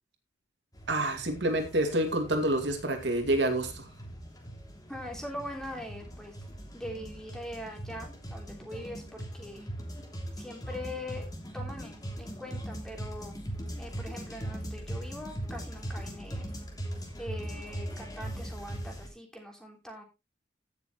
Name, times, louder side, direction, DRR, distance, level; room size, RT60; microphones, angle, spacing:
sound 1, 0.7-19.1, right 1 dB, 20° left, 3.0 m, -40 dB
voice 1, 0.9-3.9, right 1 dB, 70° right, 5 dB, 2.4 m, -28 dB
voice 2, 4.9-6.4 6.7-9.7 10.3-11.3 11.5-13.4 13.8-16.5 17.2-20.0, left 1 dB, 5° left, 1 dB, 3.4 m, -42 dB
16.5 x 7.0 x 3.1 m, 0.26 s
head